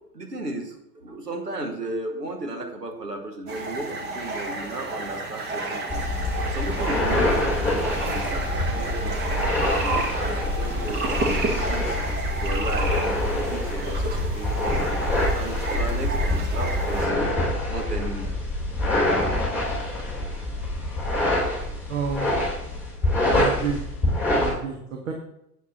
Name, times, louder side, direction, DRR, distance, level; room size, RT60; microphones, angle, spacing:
voice 1, 0.1-6.1 6.5-12.0 12.4-17.3 17.7-18.3 18.9-19.4, right 2 dB, 80° right, 3 dB, 2.0 m, -35 dB
sound 1, 3.5-17.1, right 3 dB, 20° right, 1.2 m, -31 dB
sound 2, 5.9-24.5, left 1 dB, 5° right, 3.3 m, -25 dB
voice 2, 21.9-22.3 23.3-23.8 24.3-25.1, right 5 dB, 50° right, 2 dB, 1.5 m, -30 dB
10.5 x 8.4 x 2.9 m, 0.79 s
figure-of-eight pair, 105°, 48 cm